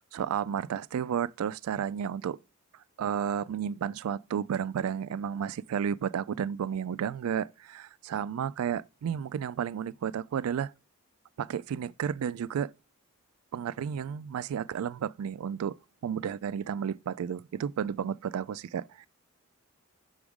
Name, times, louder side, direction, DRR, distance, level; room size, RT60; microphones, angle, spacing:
voice 1, 0.1-2.4 3.0-10.7 11.4-12.7 13.5-15.8 16.0-19.1, right 8 dB, 85° right, 0.3 m, -32 dB
7.0 x 4.8 x 3.6 m
head